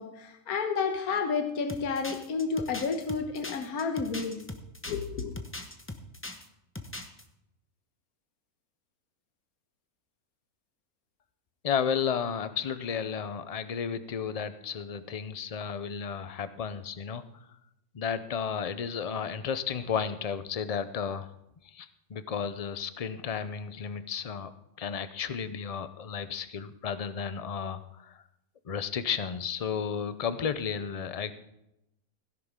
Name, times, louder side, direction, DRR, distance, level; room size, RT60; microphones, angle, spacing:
voice 1, 0.0-4.4 4.9-5.3, left 5 dB, 80° left, 5 dB, 1.6 m, -31 dB
sound 1, 1.7-6.5 6.7-7.2, left 2 dB, 10° left, 0.7 m, -40 dB
voice 2, 11.6-17.2 17.9-21.3 21.6-24.5 24.8-28.2 28.7-31.3, left 7 dB, 55° left, 12 dB, 0.4 m, -33 dB
16.5 x 10.5 x 3.7 m, 0.85 s
omnidirectional pair, 1.6 m